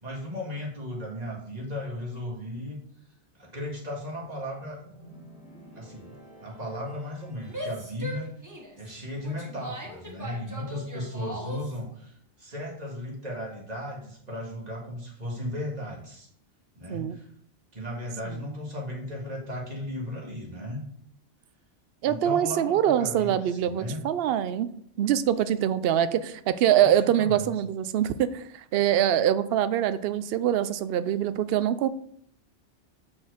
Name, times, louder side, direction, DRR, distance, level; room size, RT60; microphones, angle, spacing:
voice 1, 0.0-2.8 3.3-4.8 5.8-6.2 6.4-8.3 8.7-16.3 16.7-17.3 17.7-20.8 22.0-24.0 26.8-27.5, left 1 dB, 35° right, -2 dB, 2.2 m, -36 dB
sound 1, 4.7-7.7, right 1 dB, 5° left, 2.8 m, -51 dB
Female speech woman speaking / Yell, 7.4-11.8, equal, 15° right, 1.1 m, -39 dB
voice 2, 22.0-24.7 25.0-31.9, right 10 dB, 65° right, 13 dB, 0.7 m, -24 dB
5.7 x 4.6 x 6.5 m, 0.64 s
omnidirectional pair, 1.2 m